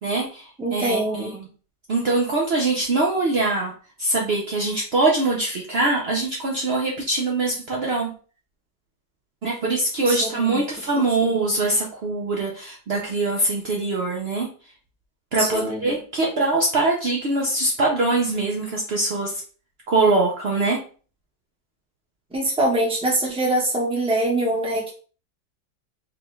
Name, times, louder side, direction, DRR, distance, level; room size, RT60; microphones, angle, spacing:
voice 1, 0.0-0.4 0.7-1.3 1.9-3.7 4.0-8.1 9.4-14.5 15.3-19.3 19.9-20.8, right 2 dB, 80° right, -2 dB, 0.5 m, -23 dB
voice 2, 0.6-1.4 10.0-10.6 10.9-11.3 15.4-16.0 22.3-24.9, right 1 dB, 5° right, -2 dB, 0.6 m, -24 dB
4.8 x 2.3 x 3.1 m, 0.39 s
omnidirectional pair, 2.0 m